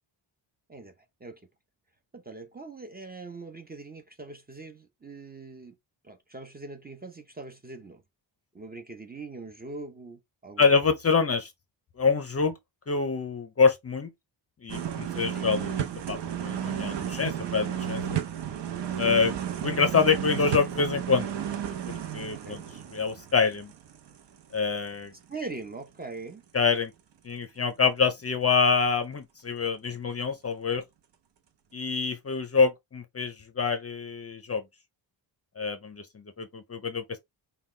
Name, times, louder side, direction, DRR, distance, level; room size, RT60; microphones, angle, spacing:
voice 1, 2.1-5.7 6.0-8.0 8.5-10.7 15.3-15.6 22.4-22.6 25.3-26.4, right 3 dB, 20° right, 0.6 m, -42 dB
voice 2, 10.6-11.5 12.0-12.6 12.9-14.1 14.6-15.7 16.1-18.2 19.0-21.3 21.7-22.6 22.9-23.7 24.5-25.1 26.5-26.9 27.2-30.8 31.7-34.6 35.6-37.2, left 5 dB, 30° left, 0.5 m, -26 dB
sound 1, 14.7-24.5 24.9-25.0, right 9 dB, 65° right, 0.8 m, -33 dB
5.6 x 2.3 x 3.1 m
wide cardioid pair, 165°, 47 cm